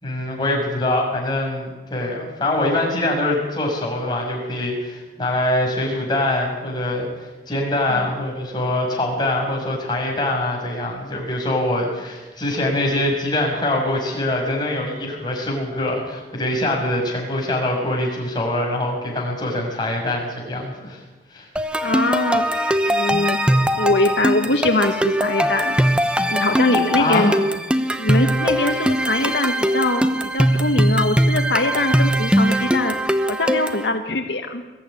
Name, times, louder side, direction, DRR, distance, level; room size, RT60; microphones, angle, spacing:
voice 1, 0.0-21.0 21.3-21.5 27.0-27.3, left 1 dB, 25° left, -1 dB, 6.4 m, -23 dB
sound 1, 21.6-33.9, equal, 5° right, 0.9 m, -20 dB
voice 2, 21.8-22.4 22.9-23.4 23.8-25.8 26.3-27.3 28.0-32.9 33.3-34.6, left 2 dB, 75° left, 5 dB, 1.5 m, -22 dB
22.0 x 14.0 x 9.8 m, 1.2 s
head